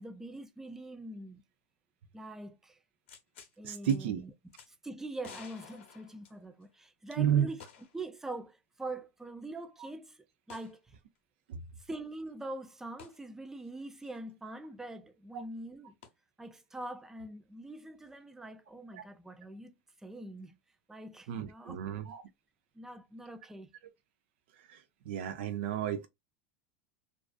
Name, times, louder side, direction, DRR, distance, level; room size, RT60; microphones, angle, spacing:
voice 1, 0.0-1.4 2.1-2.8 3.6-4.3 4.7-7.6 7.9-11.0 11.8-15.9 16.4-20.6 20.9-21.8 22.7-23.7, right 2 dB, 5° right, 0.3 m, -44 dB
sound 1, 3.1-3.5 3.9-4.0 4.5-4.7 5.2-6.7 7.6-8.0 8.4-8.5 10.5-10.8 13.0-13.2 16.0-16.1, left 7 dB, 85° left, 0.7 m, -52 dB
voice 2, 3.6-4.2 7.2-7.5 11.5-11.6 15.3-15.4 18.9-19.0 21.3-22.2 24.7-24.8 25.1-26.1, right 9 dB, 75° right, 0.4 m, -31 dB
2.4 x 2.3 x 2.2 m
supercardioid pair, 135°, 6 cm